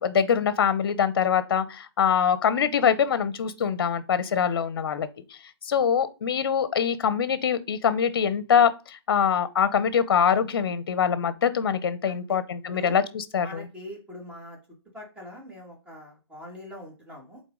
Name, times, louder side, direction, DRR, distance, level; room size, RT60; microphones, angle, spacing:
voice 1, 0.0-5.1 5.7-13.6, left 7 dB, 55° left, 0.9 m, -24 dB
voice 2, 12.0-12.4 12.7-13.0 13.4-14.6 14.9-17.4, left 1 dB, 10° right, 2.2 m, -42 dB
8.3 x 3.9 x 3.9 m
hypercardioid pair, 150°, 14 cm